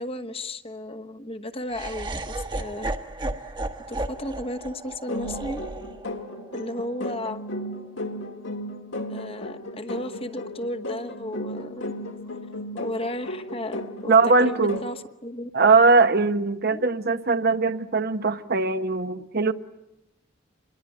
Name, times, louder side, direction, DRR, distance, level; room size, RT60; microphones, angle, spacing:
voice 1, 0.0-2.9 3.9-5.6 6.5-7.4 9.1-11.9 12.8-15.5 16.7-16.9, left 1 dB, 30° left, 1.1 m, -34 dB
Laughter, 1.7-7.8, right 2 dB, 25° right, 1.3 m, -34 dB
sound 1, 5.1-15.0, left 1 dB, 70° left, 2.1 m, -35 dB
voice 2, 14.1-14.8 15.5-19.5, right 4 dB, 55° right, 1.0 m, -20 dB
27.5 x 22.0 x 9.4 m
head